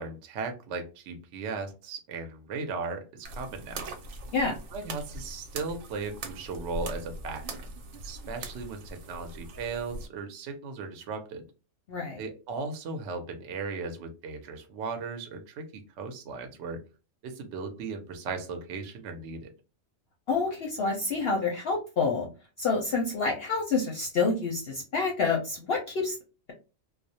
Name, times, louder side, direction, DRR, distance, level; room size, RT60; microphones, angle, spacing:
voice 1, 0.0-3.9 4.7-7.6 8.0-11.5 12.2-16.8 17.2-19.5, right 4 dB, 65° right, 5 dB, 0.8 m, -37 dB
sound 1, 3.2-10.1, right 2 dB, 85° right, 1.0 m, -41 dB
voice 2, 11.9-12.2 20.3-22.3 22.6-26.2, left 4 dB, 60° left, 0 dB, 0.7 m, -28 dB
2.3 x 2.0 x 2.7 m, 0.32 s
omnidirectional pair, 1.4 m